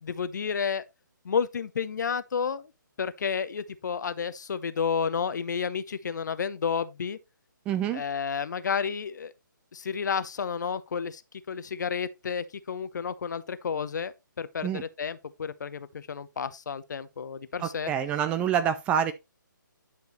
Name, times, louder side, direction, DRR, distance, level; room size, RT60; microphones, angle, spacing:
voice 1, 0.0-0.8 1.2-2.7 3.0-7.2 7.9-9.3 9.7-11.2 11.5-17.9, left 6 dB, 60° left, 0.8 m, -31 dB
voice 2, 7.7-8.0 14.6-14.8 17.6-19.1, right 9 dB, 10° right, 0.3 m, -27 dB
10.5 x 4.6 x 3.1 m
figure-of-eight pair, 145°, 11 cm